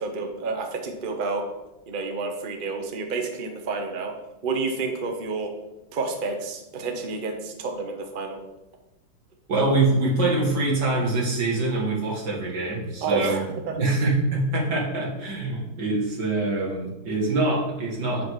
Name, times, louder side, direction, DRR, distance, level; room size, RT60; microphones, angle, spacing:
voice 1, 0.0-1.4 1.9-4.1 4.4-5.5 5.9-8.4 13.0-13.8, right 3 dB, 70° right, 3 dB, 0.4 m, -29 dB
voice 2, 9.5-13.4 13.8-18.2, right 2 dB, 55° right, -3 dB, 2.3 m, -24 dB
7.6 x 5.0 x 4.7 m, 0.99 s
omnidirectional pair, 2.3 m